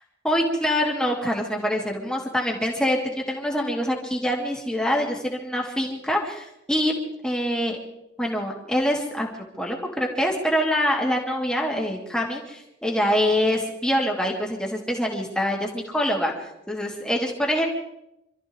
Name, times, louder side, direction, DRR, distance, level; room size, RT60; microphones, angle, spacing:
voice 1, 0.2-7.8 8.2-17.6, equal, 5° left, -1 dB, 2.6 m, -25 dB
27.0 x 14.0 x 3.7 m, 0.87 s
head